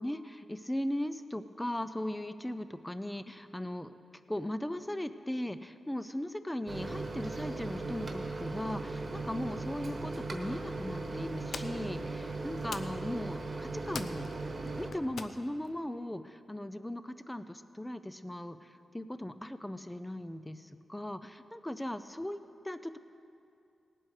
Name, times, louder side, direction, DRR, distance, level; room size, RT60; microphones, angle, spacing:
voice 1, 0.0-3.9 4.3-14.3 14.6-22.4 22.6-23.0, left 1 dB, 5° left, 11 dB, 0.4 m, -38 dB
Microwave oven, 6.7-14.9, right 3 dB, 35° right, 1.2 m, -38 dB
sound 1, 10.6-15.9, left 5 dB, 70° left, 0.6 m, -47 dB
18.5 x 7.7 x 4.8 m, 2.5 s
wide cardioid pair, 160°, 0 cm